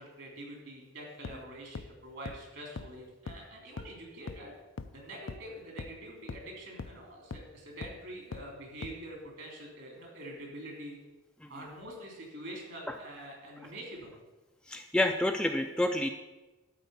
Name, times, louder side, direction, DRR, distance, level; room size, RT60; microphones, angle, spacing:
voice 1, 0.0-4.5 4.9-11.0 11.5-14.2, right 1 dB, 60° right, 0 dB, 3.4 m, -45 dB
sound 1, 1.2-1.3 1.7-1.8 2.3-2.4 2.8-2.9 3.3-3.4 3.8-3.9 4.3-4.4 4.8-4.9 5.3-5.4 5.8-5.9 6.3-6.4 6.8-6.9 7.3-7.4 7.8-7.9 8.3-8.4 8.8-8.9, left 4 dB, 65° left, 0.5 m, -39 dB
voice 2, 14.7-16.1, left 1 dB, 5° left, 4 dB, 0.5 m, -29 dB
12.5 x 4.7 x 8.2 m, 1.1 s
head